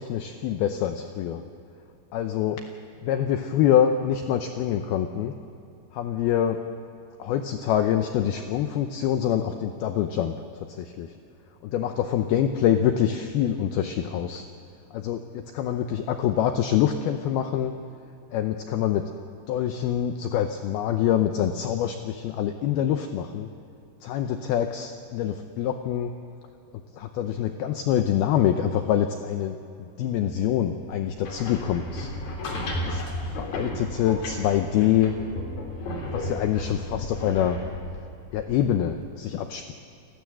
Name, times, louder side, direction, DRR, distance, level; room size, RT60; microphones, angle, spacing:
voice 1, 0.0-1.4 2.1-2.7 3.1-5.3 5.9-6.7 7.2-11.1 11.6-14.5 14.9-17.7 18.3-19.1 19.5-23.5 24.0-26.2 26.9-32.1 32.9-35.2 36.1-37.6 38.3-39.7, left 10 dB, 85° left, 6 dB, 2.2 m, -25 dB
sound 1, 31.0-39.0, left 1 dB, 50° left, 4.8 m, -34 dB
29.0 x 12.5 x 7.7 m, 2.7 s
omnidirectional pair, 5.4 m